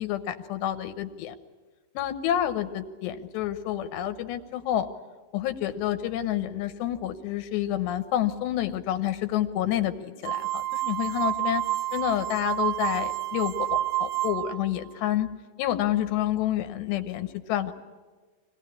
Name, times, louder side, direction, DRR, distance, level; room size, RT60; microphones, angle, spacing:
voice 1, 0.0-1.3 1.9-4.9 5.3-11.6 11.9-15.3 15.6-17.7, left 12 dB, 75° left, 8 dB, 3.1 m, -28 dB
sound 1, 10.2-14.6, right 14 dB, 75° right, 3.2 m, -29 dB
25.0 x 18.5 x 10.0 m, 1.4 s
omnidirectional pair, 5.4 m